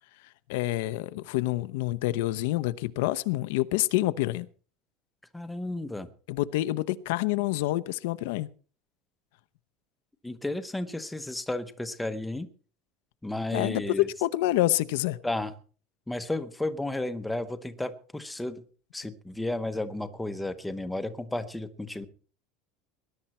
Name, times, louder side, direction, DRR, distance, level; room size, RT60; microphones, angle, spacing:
voice 1, 0.5-4.5 6.3-8.5 13.5-13.8 14.2-15.2, left 17 dB, 75° left, 0.8 m, -27 dB
voice 2, 5.3-6.1 10.2-12.5 13.2-14.1 15.2-15.5 16.1-18.6 18.9-22.0, left 2 dB, 5° left, 1.0 m, -33 dB
20.0 x 11.5 x 4.4 m
cardioid pair, 175°, 0 cm